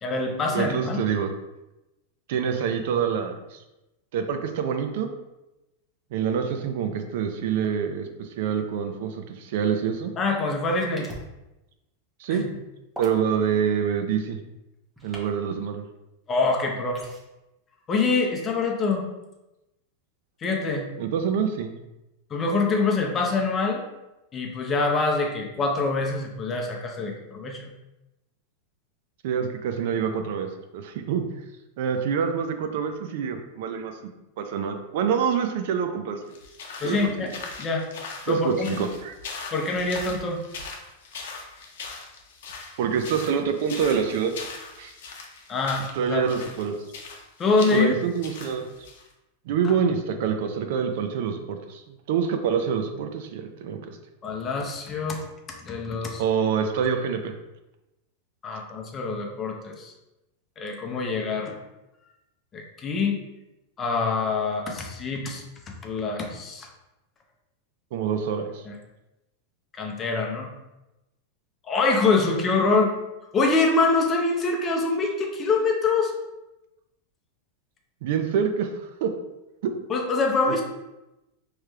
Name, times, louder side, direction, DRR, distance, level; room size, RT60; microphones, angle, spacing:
voice 1, 0.0-1.0 10.2-11.1 12.3-12.5 16.3-17.0 17.9-19.0 20.4-20.9 22.3-23.8 24.3-27.7 36.8-37.3 37.6-37.9 38.3-38.8 39.5-40.4 45.5-46.2 47.4-47.9 54.2-55.2 55.6-56.2 58.4-59.9 60.6-61.5 62.5-63.2 63.8-66.7 68.7-68.8 69.8-70.5 71.7-72.9 73.3-76.1 79.9-80.6, left 3 dB, 25° left, 2 dB, 0.6 m, -25 dB
voice 2, 0.5-1.3 2.3-3.6 4.1-5.1 6.1-10.1 12.2-12.5 13.0-14.4 15.0-15.8 21.0-21.8 29.2-30.5 30.7-31.2 31.8-33.9 34.4-36.2 36.8-37.3 38.2-39.1 42.8-44.3 44.8-44.9 45.9-46.8 47.7-48.7 49.5-54.0 56.2-57.3 67.9-68.6 78.0-79.1 79.6-79.7 80.5-80.6, right 7 dB, 65° right, 6 dB, 0.4 m, -26 dB
sound 1, 11.0-11.3 13.0-13.2 15.0-15.3 17.0-17.2, right 1 dB, 5° right, 0.8 m, -39 dB
sound 2, 36.3-49.1, left 4 dB, 75° left, 0.7 m, -40 dB
4.8 x 3.1 x 2.3 m, 0.97 s
supercardioid pair, 135°, 0 cm